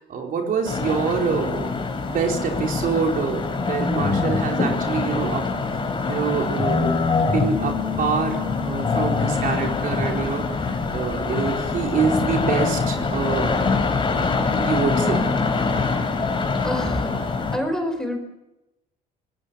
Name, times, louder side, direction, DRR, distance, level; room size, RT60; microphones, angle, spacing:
voice 1, 0.0-5.4 6.1-13.6 14.6-15.2, right 5 dB, 55° right, 2 dB, 4.4 m, -26 dB
sound 1, 0.6-17.6, left 4 dB, 30° left, 4.1 m, -24 dB
Bass guitar, 7.4-11.7 12.0-13.6, left 8 dB, 30° right, 6.9 m, -36 dB
voice 2, 16.6-18.2, left 1 dB, 5° left, 5 dB, 4.5 m, -27 dB
26.0 x 19.5 x 7.1 m, 0.97 s
cardioid pair, 110°, 17 cm